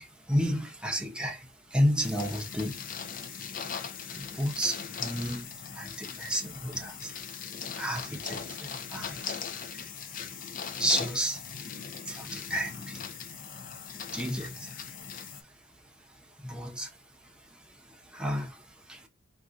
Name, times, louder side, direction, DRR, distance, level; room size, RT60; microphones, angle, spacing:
voice 1, 0.0-1.4 1.7-2.7 4.1-5.5 5.8-7.1 7.8-9.1 10.8-11.4 12.1-13.0 14.1-14.6 16.4-16.9 18.1-18.5 18.9-19.0, equal, 5° right, 0.6 m, -31 dB
sound 1, 2.0-15.4, left 6 dB, 45° left, 0.4 m, -39 dB
3.7 x 2.3 x 2.5 m
head